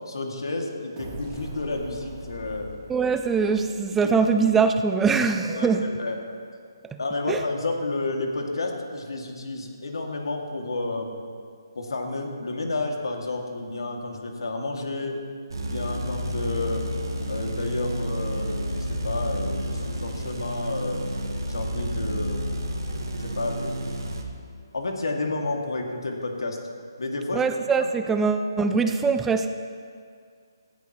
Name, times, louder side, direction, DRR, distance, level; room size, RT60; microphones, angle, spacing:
voice 1, 0.1-2.7 3.9-4.3 5.5-6.3 7.0-11.2 11.7-15.2 15.6-16.9 17.3-21.0 21.5-22.5 23.2-23.8 24.7-26.6 27.0-27.4, left 2 dB, 80° left, 1 dB, 2.3 m, -31 dB
sound 1, 1.0-4.6, right 1 dB, 25° right, 3.2 m, -41 dB
voice 2, 2.9-5.9 6.8-7.0 7.3-7.4 27.3-29.5, right 5 dB, 5° right, 8 dB, 0.3 m, -22 dB
sound 2, 15.5-24.2, equal, 70° right, 1.8 m, -30 dB
17.5 x 14.5 x 3.1 m, 2.2 s
hypercardioid pair, 160°, 2 cm